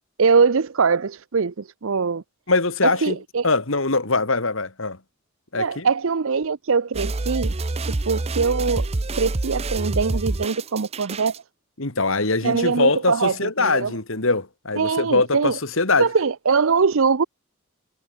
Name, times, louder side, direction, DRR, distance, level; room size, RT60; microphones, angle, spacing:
voice 1, 0.2-2.2 2.8-3.5 5.5-7.5 7.8-8.9 9.1-11.3 12.4-13.9 14.8-15.6 16.0-17.2, right 5 dB, 65° right, 0.6 m, -22 dB
voice 2, 2.5-3.2 3.4-5.0 5.5-5.9 11.8-16.1, left 3 dB, 60° left, 2.3 m, -22 dB
sound 1, 6.9-11.4, right 2 dB, 30° right, 0.7 m, -27 dB
head